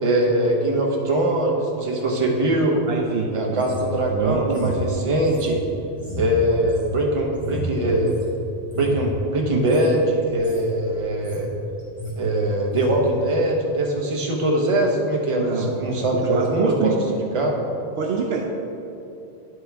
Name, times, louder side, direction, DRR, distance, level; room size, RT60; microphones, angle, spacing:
voice 1, 0.0-2.8 3.3-5.6 6.2-8.1 8.8-11.5 12.2-16.9 17.3-17.6, right 1 dB, 30° right, -1 dB, 0.8 m, -22 dB
voice 2, 2.9-3.6 4.1-4.8 15.3-15.7 16.1-17.0 18.0-18.4, right 5 dB, 70° right, 1 dB, 0.8 m, -25 dB
sound 1, 3.6-8.3 8.6-9.1 9.6-9.9 10.2-10.7 11.0-11.5 11.8-12.2 12.7-12.9, left 1 dB, 5° right, 1.6 m, -33 dB
9.8 x 4.8 x 3.4 m, 2.8 s
omnidirectional pair, 1.1 m